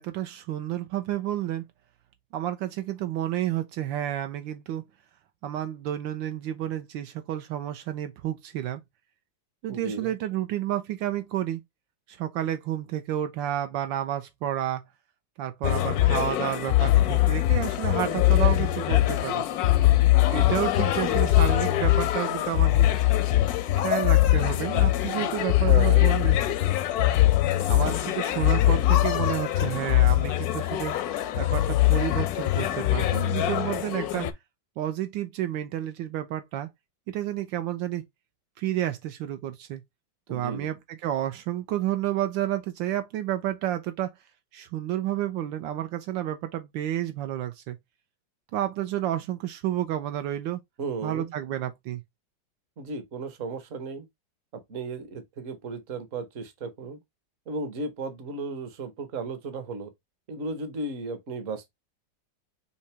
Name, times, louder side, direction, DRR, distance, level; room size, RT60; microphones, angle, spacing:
voice 1, 0.0-1.6 2.3-4.8 5.4-8.8 9.6-11.6 12.1-14.9 15.4-19.4 20.3-22.9 23.8-26.4 27.7-30.9 31.4-34.3 34.8-36.7 37.1-38.0 38.6-39.8 40.3-44.1 44.5-47.8 48.5-50.6 51.0-52.0, right 12 dB, 80° right, 1.3 m, -30 dB
voice 2, 9.7-10.1 25.7-26.1 40.3-40.7 50.8-51.3 52.8-54.1 54.5-57.0 57.5-59.9 60.3-61.7, right 3 dB, 50° right, 1.2 m, -35 dB
sound 1, 15.6-34.3, left 14 dB, 70° left, 0.9 m, -22 dB
5.7 x 2.8 x 3.2 m
omnidirectional pair, 2.1 m